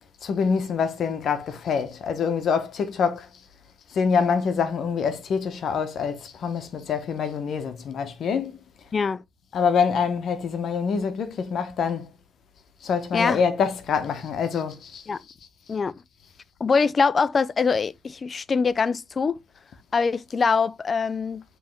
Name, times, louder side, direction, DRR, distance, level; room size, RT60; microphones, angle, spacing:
voice 1, 0.2-3.3 3.9-8.5 9.5-12.1 12.8-15.0, left 6 dB, 65° left, 0.8 m, -25 dB
voice 2, 8.9-9.2 13.1-13.4 15.1-15.2 15.7-16.0 16.6-19.4 19.9-21.4, left 5 dB, 40° left, 0.3 m, -23 dB
5.3 x 3.2 x 3.1 m
cardioid pair, 90°, 0 cm